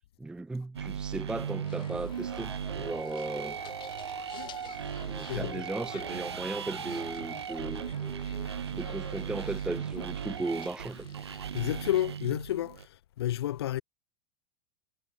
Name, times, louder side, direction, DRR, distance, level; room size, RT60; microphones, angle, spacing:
voice 1, 0.2-3.6 5.0-7.9 8.7-11.1, right 2 dB, 5° right, 0.3 m, -36 dB
sound 1, 0.7-12.9, right 8 dB, 90° right, 1.2 m, -37 dB
sound 2, 1.6-12.0, left 12 dB, 35° left, 7.5 m, -51 dB
sound 3, 2.3-8.5, left 3 dB, 15° left, 5.6 m, -49 dB
voice 2, 5.3-5.7 11.5-12.9 13.2-13.8, left 13 dB, 75° left, 1.1 m, -31 dB
hypercardioid pair, 105°, 13 cm